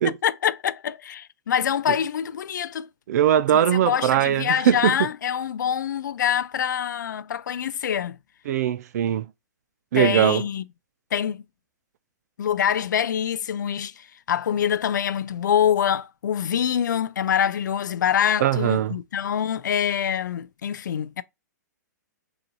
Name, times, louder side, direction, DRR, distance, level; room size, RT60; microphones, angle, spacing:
voice 1, 0.0-2.9 3.5-8.2 9.9-10.6 11.1-11.4 12.4-21.2, left 9 dB, 75° left, 0.4 m, -25 dB
voice 2, 3.1-5.0 8.5-9.3 9.9-10.4 18.4-19.0, right 10 dB, 60° right, 0.4 m, -20 dB
4.0 x 2.5 x 4.3 m
hypercardioid pair, 120°, 10 cm